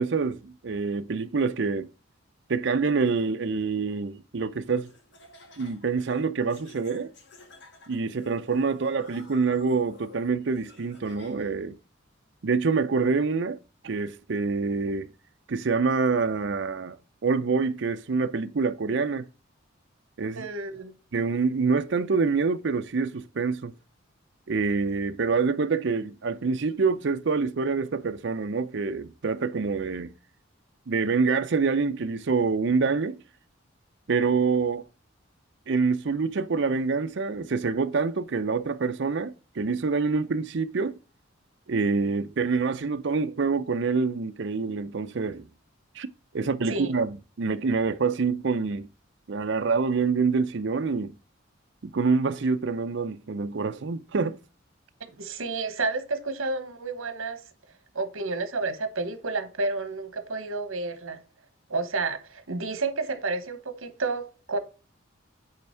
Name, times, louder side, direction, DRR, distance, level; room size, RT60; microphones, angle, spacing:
voice 1, 0.0-1.9 2.5-4.9 5.6-7.1 7.9-11.8 12.4-13.6 13.8-15.1 15.5-17.0 17.2-19.3 20.2-20.5 21.1-23.7 24.5-30.1 30.9-33.2 34.1-34.8 35.7-41.0 41.7-45.5 45.9-46.1 46.3-48.9 49.3-51.1 51.8-54.4, right 4 dB, 60° right, 0.5 m, -26 dB
Laughter, 4.8-11.7, left 2 dB, 55° left, 1.6 m, -52 dB
voice 2, 20.4-20.9 46.7-46.9 55.2-57.4 57.9-61.2 61.7-64.6, right 3 dB, 80° right, 1.1 m, -30 dB
8.9 x 3.4 x 4.3 m
head